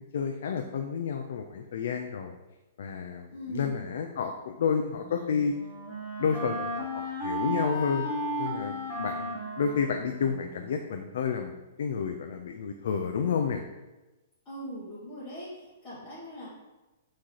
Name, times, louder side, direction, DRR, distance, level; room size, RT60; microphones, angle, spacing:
voice 1, 0.0-2.3 2.8-5.5 6.2-8.1 8.4-11.5 11.8-13.6, left 6 dB, 70° left, 5 dB, 0.3 m, -30 dB
voice 2, 3.3-3.8 14.4-15.5 15.8-16.5, equal, 20° left, -12 dB, 1.5 m, -40 dB
Wind instrument woodwind instrument, 4.9-10.8, equal, ahead, 1.1 m, -35 dB
3.6 x 3.1 x 4.2 m, 1.1 s
hypercardioid pair, 150°, 0 cm